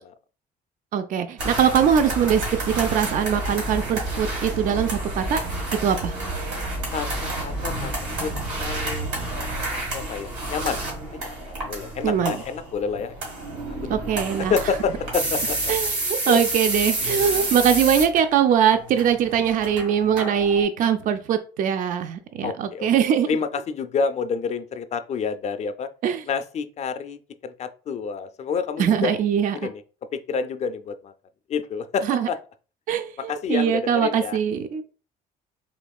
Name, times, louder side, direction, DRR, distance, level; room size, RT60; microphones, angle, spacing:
voice 1, 0.9-5.4 5.8-6.2 12.0-12.4 13.9-14.5 15.7-23.3 26.0-26.2 28.8-29.6 32.0-32.3 32.9-34.8, right 8 dB, 55° right, 0.4 m, -22 dB
sound 1, 1.4-20.6, right 2 dB, 85° right, 1.7 m, -29 dB
voice 2, 6.9-7.9 8.2-8.3 8.6-9.1 9.9-10.8 11.1-13.1 13.8-14.0 14.4-15.7 16.2-16.4 22.4-22.9 23.3-25.9 26.3-29.1 29.5-29.8 30.1-31.1 31.5-32.4 33.3-34.4, left 6 dB, 40° left, 0.4 m, -28 dB
4.3 x 2.9 x 2.3 m
cardioid pair, 110°, 17 cm